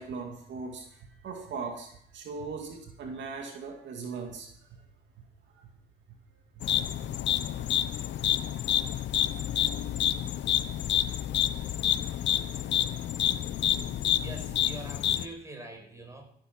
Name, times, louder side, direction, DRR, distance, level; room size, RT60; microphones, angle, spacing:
voice 1, 0.0-4.8 5.5-5.7 7.1-7.2, right 4 dB, 80° right, 2 dB, 2.3 m, -39 dB
sound 1, 6.6-15.3, left 11 dB, 75° left, 0.8 m, -28 dB
voice 2, 14.2-16.3, right 2 dB, 15° right, 3 dB, 5.3 m, -44 dB
16.0 x 8.8 x 5.8 m, 0.66 s
cardioid pair, 90°, 19 cm